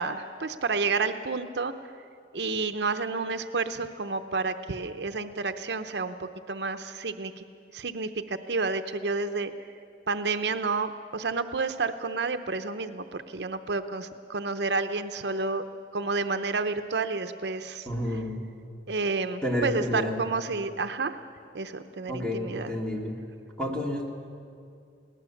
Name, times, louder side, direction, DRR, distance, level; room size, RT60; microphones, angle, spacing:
voice 1, 0.0-1.7 2.3-7.4 7.7-9.5 10.1-15.6 15.9-17.9 18.9-21.2 21.5-22.7, right 4 dB, 70° right, 9 dB, 0.7 m, -30 dB
voice 2, 17.9-18.4 19.4-20.2 22.1-23.2 23.6-24.1, left 1 dB, 5° left, -1 dB, 2.5 m, -30 dB
22.0 x 17.5 x 7.2 m, 2.4 s
head